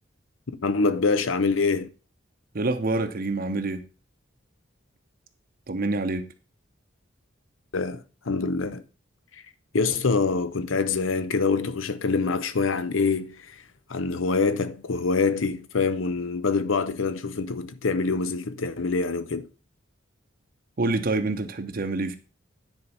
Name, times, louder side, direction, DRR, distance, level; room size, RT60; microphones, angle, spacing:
voice 1, 0.6-1.9 7.7-8.8 9.3-9.4 9.7-13.6 13.9-19.5, left 4 dB, 80° left, 0.7 m, -25 dB
voice 2, 2.5-3.8 5.7-6.3 20.8-22.2, right 2 dB, 45° right, 0.7 m, -26 dB
9.8 x 4.5 x 5.5 m
head